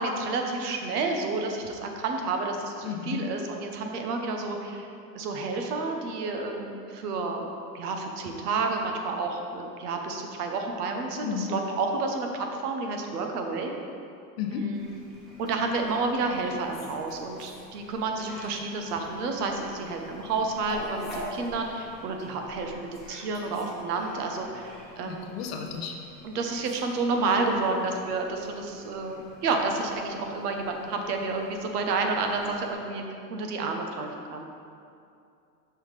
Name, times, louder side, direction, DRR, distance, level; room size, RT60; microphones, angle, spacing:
voice 1, 0.0-4.9 5.1-7.4 7.7-13.7 14.5-15.0 15.4-25.4 26.2-33.0 33.3-34.4, right 3 dB, 70° right, 3 dB, 1.0 m, -30 dB
voice 2, 2.8-3.3 11.2-11.5 14.4-14.7 25.0-26.0, left 7 dB, 40° left, 3 dB, 0.6 m, -33 dB
Fowl, 14.7-32.7, left 1 dB, ahead, 1.0 m, -47 dB
5.6 x 5.6 x 3.2 m, 2.5 s
supercardioid pair, 145°, 49 cm